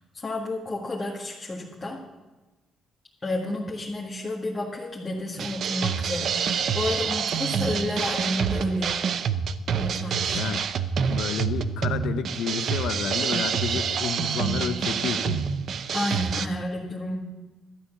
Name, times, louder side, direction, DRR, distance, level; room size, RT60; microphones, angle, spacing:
voice 1, 0.1-2.0 3.2-9.0 9.8-10.4 15.9-17.2, left 1 dB, 25° left, -3 dB, 1.8 m, -31 dB
sound 1, 5.4-16.5, right 7 dB, 65° right, 0.6 m, -27 dB
voice 2, 11.1-15.4, left 8 dB, 80° left, 11 dB, 0.8 m, -30 dB
12.5 x 8.4 x 6.7 m, 1.2 s
cardioid pair, 90°, 0 cm